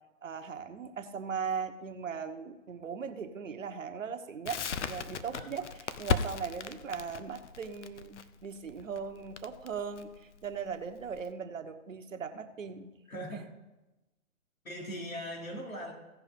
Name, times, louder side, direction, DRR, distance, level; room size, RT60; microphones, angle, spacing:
voice 1, 0.2-5.7 6.0-12.9, right 6 dB, 70° right, 7 dB, 1.2 m, -39 dB
Crackle, 4.5-11.3, left 6 dB, 60° left, 0.8 m, -36 dB
voice 2, 13.1-13.4 14.6-15.9, equal, 85° left, 0 dB, 3.1 m, -40 dB
16.0 x 5.4 x 5.1 m, 1.1 s
figure-of-eight pair, 130°, 40 cm